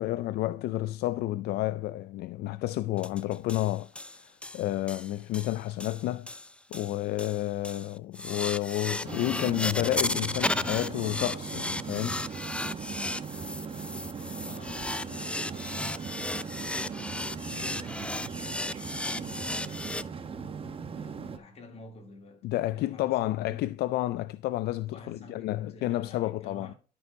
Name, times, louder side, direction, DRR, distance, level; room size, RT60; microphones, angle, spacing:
voice 1, 0.0-6.3 6.7-12.5 22.4-26.7, left 15 dB, 70° left, 0.4 m, -31 dB
sound 1, 3.0-20.0, left 2 dB, 5° left, 0.4 m, -35 dB
sound 2, 9.0-21.4, right 6 dB, 35° right, 1.1 m, -39 dB
voice 2, 14.2-20.2 20.9-23.7 24.9-26.7, left 2 dB, 40° left, 3.0 m, -50 dB
12.0 x 6.3 x 2.8 m
cardioid pair, 110°, 17 cm